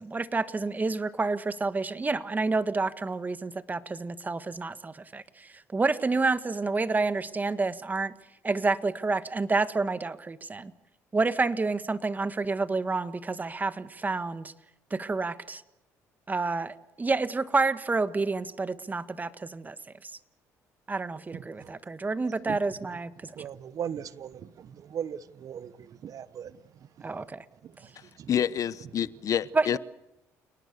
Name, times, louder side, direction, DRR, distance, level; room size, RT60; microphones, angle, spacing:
voice 1, 0.0-8.1 8.4-10.7 11.1-14.5 14.9-15.6 16.3-19.8 20.0-20.1 20.9-23.3 27.0-27.4 29.5-29.8, right 3 dB, 25° right, 1.6 m, -29 dB
voice 2, 21.3-21.7 22.5-22.6 23.4-26.5 27.6-27.7 28.2-28.3, right 8 dB, 55° right, 1.1 m, -38 dB
voice 3, 28.3-29.8, left 9 dB, 55° left, 0.9 m, -28 dB
29.5 x 19.0 x 6.9 m
supercardioid pair, 70°, 7 cm